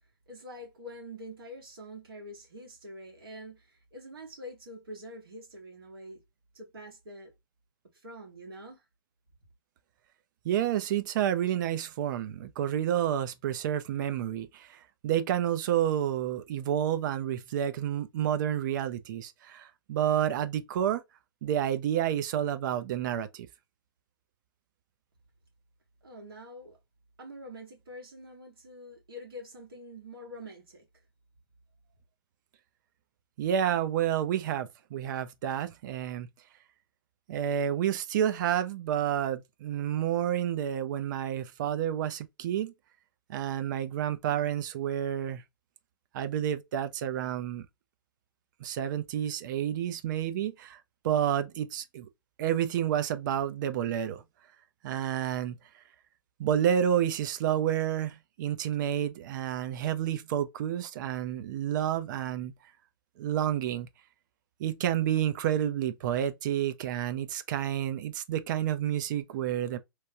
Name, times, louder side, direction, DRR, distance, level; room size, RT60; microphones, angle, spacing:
voice 1, 0.3-6.2 6.5-7.3 7.9-8.8 26.0-26.8 27.2-30.8, equal, 80° right, 1.4 m, -45 dB
voice 2, 10.4-21.0 21.4-23.5 33.4-36.3 37.3-42.7 43.3-45.4 46.1-47.7 48.6-50.8 51.0-52.1 52.4-54.2 54.8-55.6 56.4-62.5 63.2-63.9 64.6-69.8, right 10 dB, 55° right, 0.6 m, -29 dB
3.1 x 2.2 x 2.7 m
hypercardioid pair, 115°, 12 cm